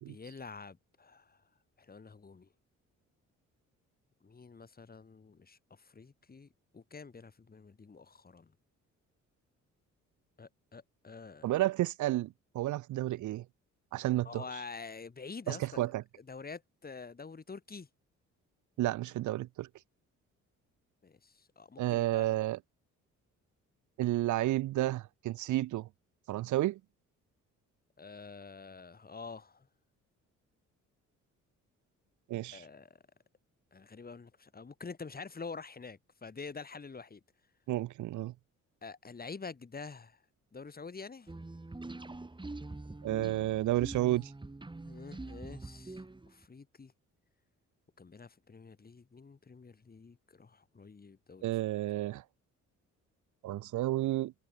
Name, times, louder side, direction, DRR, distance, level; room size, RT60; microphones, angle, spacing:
voice 1, 0.1-1.4 1.8-2.5 4.2-8.5 10.4-11.5 14.2-15.8 16.2-17.9 21.0-22.3 28.0-29.7 32.5-33.0 33.7-37.2 38.8-40.2 40.5-41.3 44.8-46.0 46.3-46.9 48.0-51.4, left 4 dB, 30° left, 4.6 m, -47 dB
voice 2, 11.4-13.5 13.9-14.4 15.5-16.0 18.8-19.7 21.8-22.6 24.0-25.9 26.3-26.8 32.3-32.7 37.7-38.3 43.0-44.3 51.4-52.2 53.4-54.3, right 15 dB, 75° right, 0.8 m, -31 dB
sound 1, 41.3-46.4, right 2 dB, 15° right, 3.7 m, -44 dB
cardioid pair, 90°, 30 cm